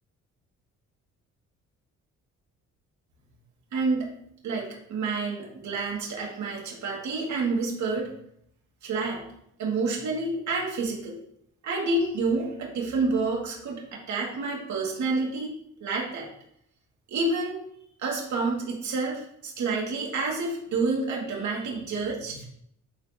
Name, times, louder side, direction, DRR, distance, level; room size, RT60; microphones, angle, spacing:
voice 1, 3.7-4.1 4.4-8.1 8.8-9.2 9.6-11.2 11.6-15.5 15.8-16.3 17.1-17.6 18.0-22.4, right 3 dB, 70° right, -2 dB, 2.6 m, -29 dB
11.0 x 4.5 x 3.1 m, 0.71 s
cardioid pair, 90°, 30 cm